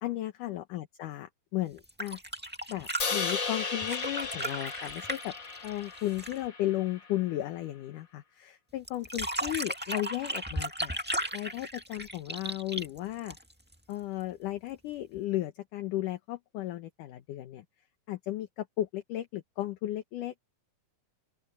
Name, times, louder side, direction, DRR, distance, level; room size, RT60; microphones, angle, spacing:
voice 1, 0.0-2.2 2.7-5.3 5.6-11.0 11.3-13.4 13.9-17.6 18.1-20.5, left 14 dB, 70° left, 2.4 m, -35 dB
sound 1, 1.8-6.5 8.9-13.7 15.2-15.3, right 1 dB, 10° right, 0.4 m, -36 dB
Crash cymbal, 3.0-7.2, left 5 dB, 35° left, 2.4 m, -35 dB
open air
omnidirectional pair, 4.3 m